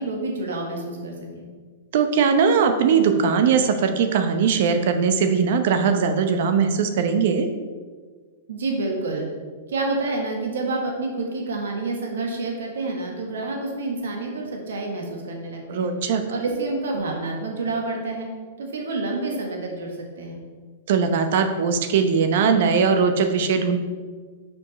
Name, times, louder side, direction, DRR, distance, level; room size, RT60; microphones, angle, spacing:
voice 1, 0.0-1.5 8.5-9.3 9.7-15.9 16.3-18.3 18.6-20.4, right 2 dB, 85° right, 1 dB, 1.5 m, -28 dB
voice 2, 1.9-7.5 15.7-16.2 20.9-23.8, right 6 dB, 60° right, 8 dB, 0.8 m, -20 dB
7.1 x 5.2 x 4.2 m, 1.5 s
hypercardioid pair, 145°, 0 cm